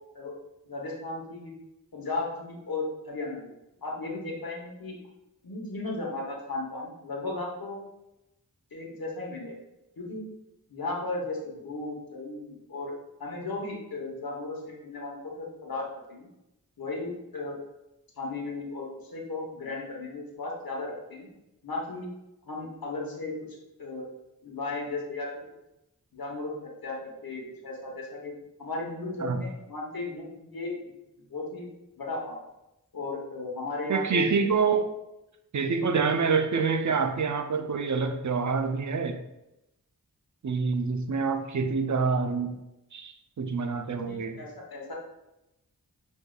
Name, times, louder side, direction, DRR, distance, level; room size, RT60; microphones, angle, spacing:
voice 1, 0.7-1.5 1.9-3.5 3.8-5.0 5.4-7.8 8.7-9.6 10.0-10.3 10.7-12.9 13.2-16.3 16.8-17.6 18.2-21.3 21.6-22.1 22.5-23.3 23.8-24.1 24.4-25.4 26.1-26.5 26.8-28.3 28.6-30.7 31.3-31.7 32.0-32.4 32.9-34.3 44.0-44.9, left 2 dB, 80° left, -2 dB, 1.0 m, -35 dB
voice 2, 33.9-34.9 35.5-39.2 40.4-42.6 42.9-44.4, right 5 dB, 55° right, 7 dB, 0.5 m, -26 dB
6.2 x 2.7 x 2.3 m, 0.91 s
wide cardioid pair, 45°, 35 cm